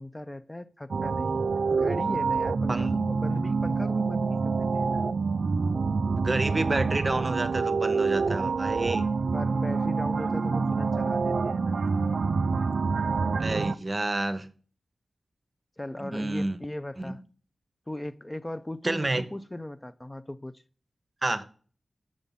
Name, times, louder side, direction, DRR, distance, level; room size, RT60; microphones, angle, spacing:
voice 1, 0.0-5.0 9.3-11.8 15.8-17.2 17.9-20.6, left 1 dB, 20° left, 0.4 m, -38 dB
sound 1, 0.9-13.7, right 4 dB, 70° right, 0.3 m, -27 dB
voice 2, 6.2-9.1 13.4-14.5 16.0-16.6 17.0-17.2 18.8-19.2 21.2-21.4, right 2 dB, 35° right, 0.8 m, -29 dB
7.0 x 6.2 x 5.5 m
cardioid pair, 60°, 0 cm